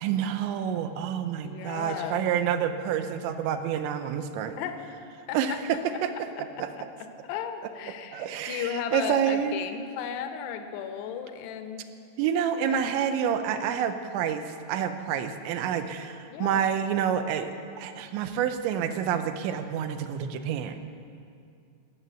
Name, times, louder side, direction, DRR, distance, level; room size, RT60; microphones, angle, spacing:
voice 1, 0.0-4.6 5.3-6.1 6.6-6.7 8.1-9.6 12.2-20.8, right 8 dB, 80° right, 8 dB, 3.0 m, -28 dB
voice 2, 1.4-2.2 4.6-4.8 5.3-5.6 6.6-11.8 12.7-12.8 16.3-16.6, left 8 dB, 75° left, 7 dB, 2.6 m, -35 dB
19.0 x 7.5 x 8.3 m, 2.4 s
omnidirectional pair, 5.5 m